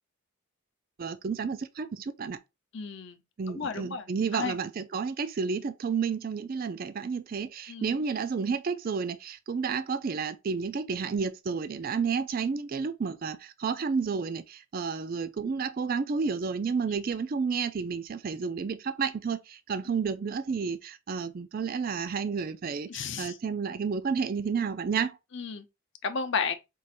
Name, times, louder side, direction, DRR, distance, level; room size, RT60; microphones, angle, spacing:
voice 1, 1.0-2.4 3.4-25.2, right 5 dB, 40° right, 0.3 m, -31 dB
voice 2, 2.7-3.2 3.5-4.0 4.3-4.6 7.7-7.9 22.9-23.4 25.3-25.7 26.0-26.5, left 5 dB, 55° left, 0.7 m, -32 dB
4.7 x 2.5 x 4.2 m
head